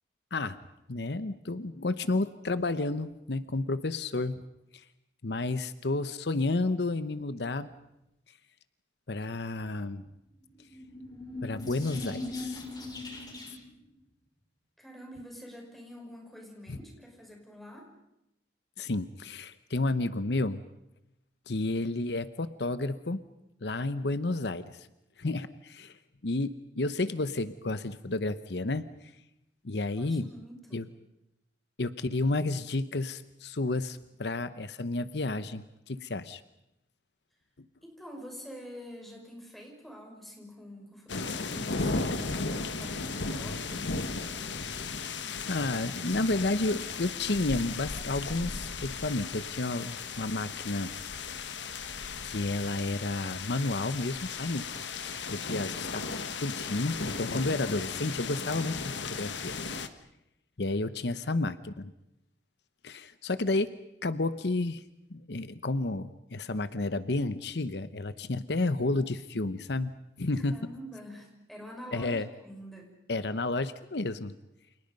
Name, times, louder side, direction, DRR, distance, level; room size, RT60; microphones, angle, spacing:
voice 1, 0.9-4.4 4.7-4.8 5.2-7.7 9.1-10.0 11.4-12.6 13.5-13.6 16.7-16.8 18.8-20.6 21.5-23.2 23.6-24.9 25.2-25.9 26.2-28.9 29.6-30.3 30.7-30.9 31.8-36.4 45.5-50.9 52.2-54.7 55.0-56.0 56.4-59.6 60.6-61.9 62.8-64.8 65.1-69.9 70.2-70.6 71.9-72.3 73.1-74.3, left 2 dB, 70° left, 13 dB, 0.9 m, -31 dB
sound 1, 10.5-13.7, left 2 dB, 25° left, 6.0 m, -39 dB
voice 2, 14.8-17.9 30.0-30.8 37.8-43.9 70.4-72.9, equal, ahead, 0 dB, 5.9 m, -46 dB
sound 2, 41.1-59.9, left 4 dB, 85° left, 1.4 m, -36 dB
30.0 x 28.0 x 5.4 m, 0.86 s
head